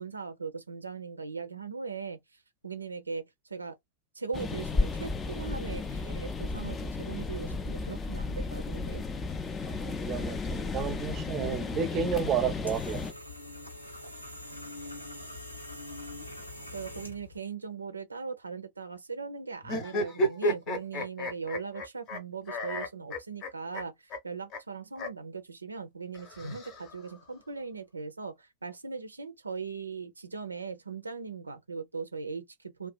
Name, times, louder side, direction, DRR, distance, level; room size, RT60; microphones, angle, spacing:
voice 1, 0.0-2.2 2.6-3.2 3.5-3.8 4.2-9.0 16.7-32.9, right 5 dB, 80° right, 0.4 m, -39 dB
sound 1, 4.3-13.1, left 3 dB, 20° left, 0.4 m, -33 dB
voice 2, 9.6-13.0, right 7 dB, 30° right, 0.5 m, -31 dB
sound 2, 12.0-17.4, left 1 dB, 85° left, 0.8 m, -44 dB
sound 3, 19.6-22.2 22.5-23.8 24.1-24.2 24.5-24.6 25.0-25.1 26.1-27.1, equal, 35° left, 0.8 m, -32 dB
2.4 x 2.3 x 2.3 m
figure-of-eight pair, 90°, 0 cm